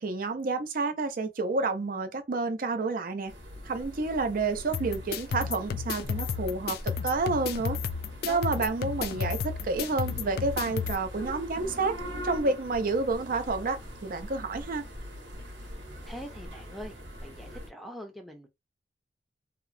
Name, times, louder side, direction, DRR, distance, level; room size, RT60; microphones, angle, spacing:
voice 1, 0.0-3.3 3.6-6.8 7.0-7.8 8.2-11.9 12.2-14.8, right 3 dB, 50° right, 0.5 m, -29 dB
sound 1, 3.3-17.7, equal, 85° right, 0.9 m, -42 dB
sound 2, 4.7-11.0, left 7 dB, 55° left, 0.3 m, -33 dB
voice 2, 8.3-8.7 16.0-18.5, equal, ahead, 0.5 m, -43 dB
2.8 x 2.0 x 2.5 m
head